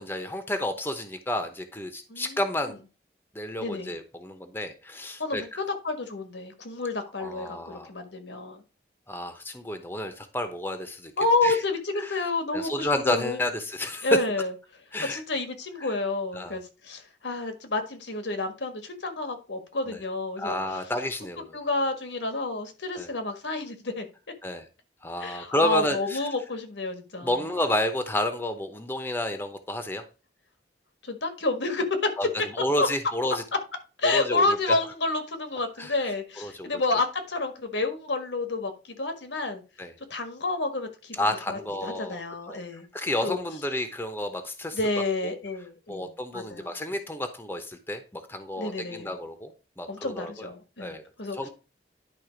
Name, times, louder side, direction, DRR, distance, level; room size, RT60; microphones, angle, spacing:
voice 1, 0.0-2.8 3.3-5.4 7.2-7.9 9.1-11.1 11.4-11.6 12.0-12.3 12.5-14.2 14.9-15.2 15.8-15.9 16.3-16.6 19.9-20.0 20.4-21.6 22.9-23.1 24.4-24.7 25.0-26.2 27.2-30.0 32.2-32.3 32.5-33.4 34.0-34.8 35.8-35.9 36.4-36.8 39.8-39.9 41.1-42.2 42.5-44.8 45.2-45.3 45.9-49.5 49.8-50.5 50.8-51.0 51.3-51.5, left 1 dB, 10° left, 8 dB, 0.9 m, -30 dB
voice 2, 3.6-3.9 5.2-8.6 11.2-13.4 14.0-14.5 15.1-20.6 21.5-24.1 25.2-27.4 31.0-32.1 32.8-32.9 34.0-39.6 40.1-42.9 43.2-43.4 44.7-46.7 48.6-49.1 49.9-51.5, left 2 dB, 80° left, 7 dB, 1.5 m, -29 dB
10.5 x 3.7 x 5.1 m, 0.32 s
head